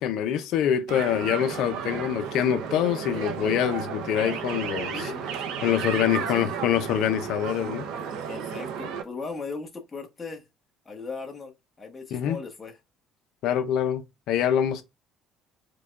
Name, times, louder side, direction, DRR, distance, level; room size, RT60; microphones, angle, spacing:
voice 1, 0.0-4.9 5.6-7.9 12.1-12.4 13.4-14.8, left 10 dB, 70° left, 0.5 m, -25 dB
sound 1, 0.9-9.0, right 7 dB, 80° right, 0.7 m, -33 dB
voice 2, 4.9-6.5 8.3-10.4 10.8-12.8, left 4 dB, 25° left, 1.1 m, -38 dB
4.7 x 2.2 x 2.4 m
cardioid pair, 100°, 0 cm